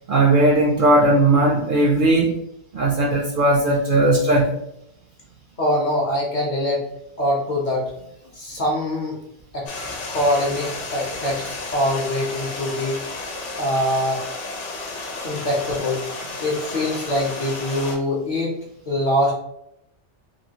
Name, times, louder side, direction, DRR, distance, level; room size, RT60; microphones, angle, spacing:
voice 1, 0.1-2.4 2.7-4.5 15.3-15.4, right 2 dB, 60° right, -1 dB, 0.6 m, -17 dB
voice 2, 5.6-6.8 7.2-7.9 8.3-9.2 9.5-9.7 10.1-13.0 13.5-14.2 15.2-16.0 16.4-18.6 18.9-19.3, left 1 dB, 45° left, -3 dB, 0.8 m, -23 dB
Stream, 9.7-18.0, left 3 dB, 85° left, 1.0 m, -32 dB
3.0 x 2.5 x 2.8 m, 0.79 s
omnidirectional pair, 1.2 m